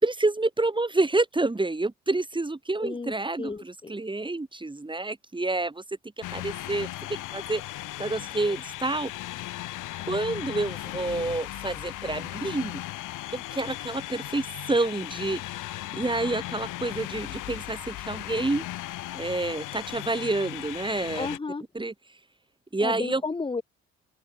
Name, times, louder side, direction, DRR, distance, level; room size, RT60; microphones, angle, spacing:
voice 1, 0.0-5.8 6.2-7.6 8.0-9.1 10.0-12.8 13.3-15.4 15.9-18.6 19.1-21.3 21.7-21.9 22.7-23.2, right 2 dB, 15° right, 3.9 m, -28 dB
voice 2, 2.8-4.0 21.2-21.6 22.8-23.6, left 4 dB, 15° left, 1.0 m, -33 dB
sound 1, 6.2-21.4, left 16 dB, 90° left, 5.5 m, -37 dB
open air
cardioid pair, 90°, 30 cm